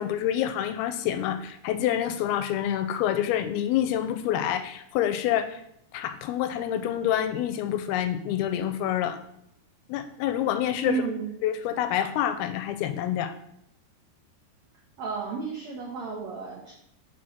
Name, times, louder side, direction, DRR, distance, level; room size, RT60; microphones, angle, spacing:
voice 1, 0.0-5.6 5.9-9.2 9.9-11.0 11.4-13.3, left 11 dB, 80° left, 10 dB, 2.3 m, -27 dB
voice 2, 10.8-11.3 15.0-16.7, right 5 dB, 90° right, 0 dB, 1.5 m, -32 dB
5.7 x 4.5 x 6.3 m, 0.74 s
omnidirectional pair, 4.6 m